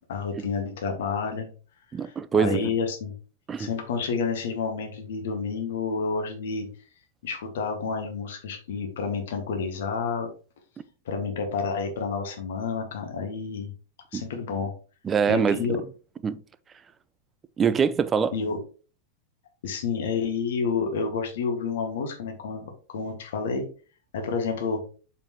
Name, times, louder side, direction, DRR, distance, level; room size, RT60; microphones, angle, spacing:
voice 1, 0.1-1.5 2.3-3.1 3.6-6.7 7.2-10.3 11.1-13.7 14.1-14.7 15.3-15.8 18.3-18.6 19.6-23.6 24.1-24.9, left 5 dB, 60° left, 2.0 m, -29 dB
voice 2, 1.9-2.7 3.5-3.7 14.1-14.2 15.0-15.6 16.2-16.4 17.6-18.3, right 6 dB, 20° right, 0.5 m, -24 dB
7.0 x 5.4 x 3.1 m
figure-of-eight pair, 90°, 0 cm